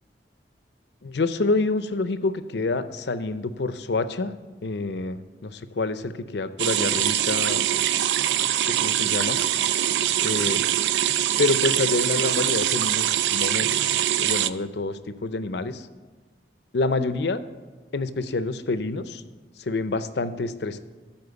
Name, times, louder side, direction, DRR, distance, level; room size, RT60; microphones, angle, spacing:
voice 1, 1.0-4.3 4.6-7.6 8.5-9.4 10.2-10.6 11.4-13.9 14.2-15.9 16.7-17.4 17.9-19.2 19.6-20.8, left 3 dB, 70° left, 12 dB, 0.6 m, -27 dB
sound 1, 6.6-14.5, right 11 dB, 80° right, 0.3 m, -23 dB
13.0 x 4.4 x 6.8 m, 1.3 s
head